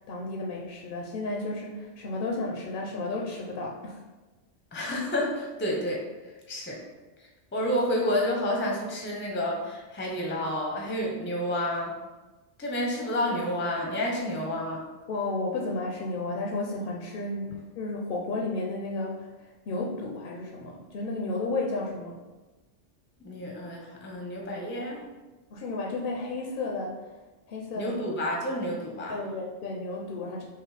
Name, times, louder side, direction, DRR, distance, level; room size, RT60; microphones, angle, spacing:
voice 1, 0.0-4.0 15.1-22.2 25.5-27.0 27.5-27.9 29.1-30.4, left 2 dB, 60° left, -1 dB, 0.6 m, -33 dB
voice 2, 4.7-6.0 6.5-6.8 7.5-12.0 12.6-14.8 23.2-25.0 27.7-29.2, left 1 dB, 15° left, -2 dB, 0.4 m, -30 dB
5.5 x 2.0 x 3.2 m, 1.2 s
omnidirectional pair, 1.3 m